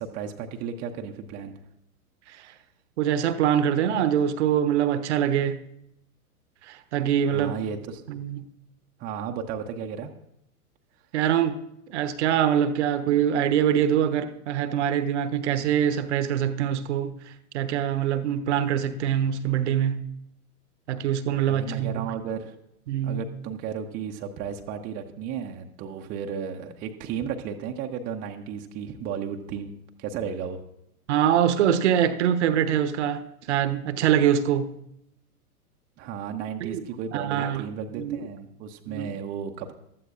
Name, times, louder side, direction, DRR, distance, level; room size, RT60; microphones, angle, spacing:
voice 1, 0.0-1.5 2.4-2.5 7.3-8.2 9.0-10.1 21.5-22.5 23.0-29.7 30.0-30.6 36.0-39.7, right 7 dB, 20° right, 0.6 m, -34 dB
voice 2, 3.0-5.6 6.7-7.6 8.1-8.4 11.1-11.6 11.9-17.1 17.5-20.0 20.9-22.1 22.9-23.2 31.1-33.2 33.5-34.7 36.6-36.8 37.1-37.7 38.0-38.2 38.9-39.1, right 9 dB, 50° right, 0.8 m, -24 dB
15.5 x 12.5 x 2.4 m
figure-of-eight pair, 100°, 45 cm